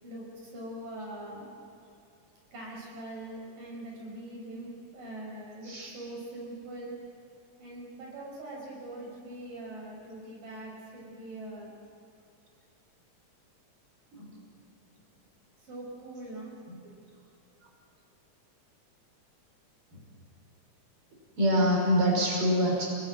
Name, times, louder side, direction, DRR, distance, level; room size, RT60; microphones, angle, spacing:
voice 1, 0.0-1.5 2.5-7.0 7.6-11.7 15.6-16.5, right 1 dB, 85° right, -3 dB, 8.1 m, -42 dB
voice 2, 21.3-22.9, equal, 40° right, -1 dB, 6.7 m, -25 dB
29.0 x 20.0 x 9.2 m, 2.7 s
omnidirectional pair, 3.8 m